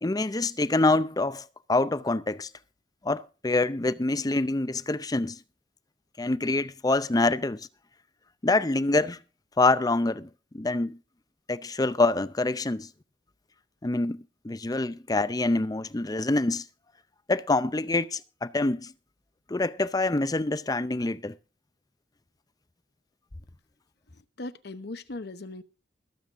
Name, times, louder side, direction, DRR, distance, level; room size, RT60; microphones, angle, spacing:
voice 1, 0.0-2.5 3.0-5.4 6.2-7.7 8.4-9.2 9.6-11.0 11.5-12.9 13.8-16.6 17.3-18.9 19.5-21.4, left 2 dB, 20° left, 0.5 m, -26 dB
voice 2, 24.1-25.6, left 2 dB, 60° left, 0.9 m, -39 dB
22.0 x 7.8 x 3.7 m
head